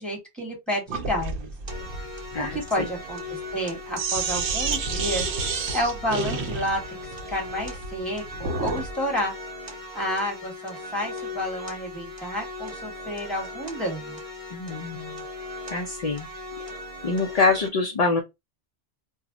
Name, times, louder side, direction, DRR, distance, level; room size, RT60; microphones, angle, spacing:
voice 1, 0.0-1.5 2.4-3.2 3.5-6.8 7.3-9.3 9.9-14.2, equal, ahead, 1.1 m, -30 dB
Sink (filling or washing), 0.9-8.9, right 4 dB, 75° right, 0.9 m, -30 dB
sound 1, 1.7-17.7, left 2 dB, 35° right, 0.8 m, -38 dB
voice 2, 2.3-2.9 14.5-15.2 15.7-16.3 17.0-18.2, left 4 dB, 55° left, 0.4 m, -25 dB
2.2 x 2.0 x 3.6 m
omnidirectional pair, 1.2 m